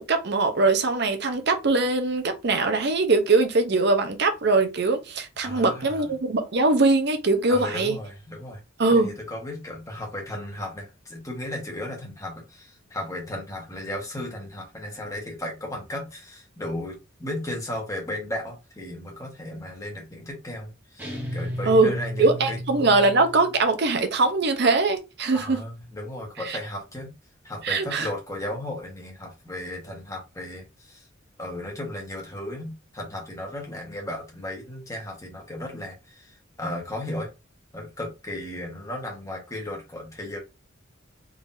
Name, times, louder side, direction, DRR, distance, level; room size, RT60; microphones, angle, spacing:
voice 1, 0.0-8.0 8.8-9.1 21.7-21.9 22.2-25.6 26.5-26.6 27.6-28.1, right 3 dB, 55° right, 0.7 m, -22 dB
voice 2, 5.4-6.1 7.5-8.6 8.9-22.6 25.3-27.1 27.4-31.1 31.4-37.3 37.7-40.4, left 1 dB, 15° left, 1.4 m, -35 dB
sound 1, 21.0-23.6, equal, 10° right, 1.3 m, -33 dB
3.8 x 3.3 x 2.6 m
head